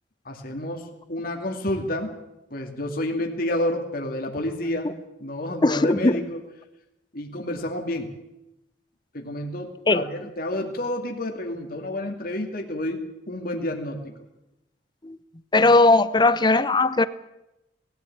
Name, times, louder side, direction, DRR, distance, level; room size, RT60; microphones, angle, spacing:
voice 1, 0.2-2.1 2.5-4.9 5.2-6.4 7.1-8.2 9.1-14.1, left 1 dB, 50° left, 3 dB, 2.6 m, -30 dB
voice 2, 5.6-6.2 9.9-10.0 15.0-15.2 15.5-17.1, left 2 dB, 25° left, 15 dB, 0.8 m, -18 dB
20.5 x 15.5 x 8.7 m, 0.91 s
head